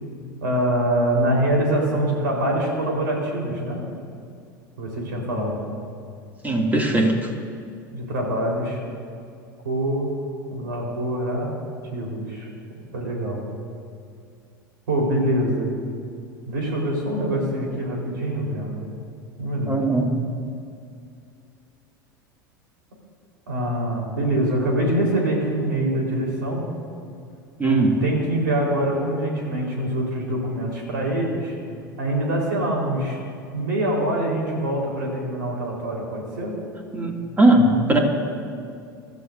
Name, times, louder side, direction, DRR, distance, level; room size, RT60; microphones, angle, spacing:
voice 1, 0.4-3.8 4.8-5.6 7.9-8.8 9.6-10.1 10.5-11.5 11.9-12.5 12.9-13.4 14.9-15.7 16.5-18.9 19.4-19.8 23.5-26.7 27.6-31.6 32.0-33.2 33.5-36.5, right 1 dB, 70° right, -1 dB, 4.1 m, -24 dB
voice 2, 6.4-7.1 19.7-20.1 27.6-28.0 36.9-38.0, right 2 dB, 15° right, 1 dB, 2.4 m, -19 dB
25.5 x 13.5 x 2.7 m, 2.4 s
figure-of-eight pair, 80°, 11 cm